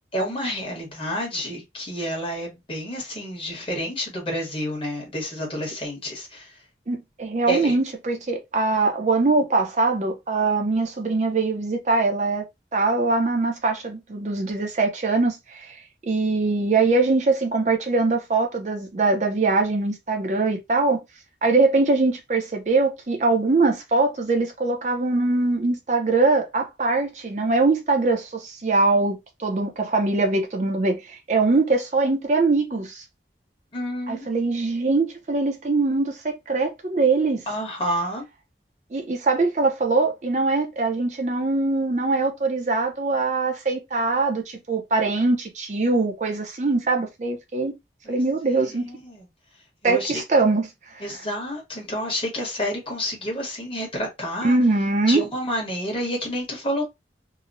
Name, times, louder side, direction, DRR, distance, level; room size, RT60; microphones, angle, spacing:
voice 1, 0.1-6.5 7.5-7.7 33.7-34.2 37.5-38.2 48.0-48.2 48.5-49.2 49.8-50.2 51.0-54.6 55.1-56.8, equal, 30° left, 1.1 m, -29 dB
voice 2, 6.9-12.4 12.7-15.8 16.1-21.0 21.4-33.0 34.1-37.4 38.9-47.7 48.1-48.9 49.8-51.2 54.4-55.2, right 3 dB, 40° right, 0.5 m, -22 dB
2.8 x 2.0 x 2.5 m
head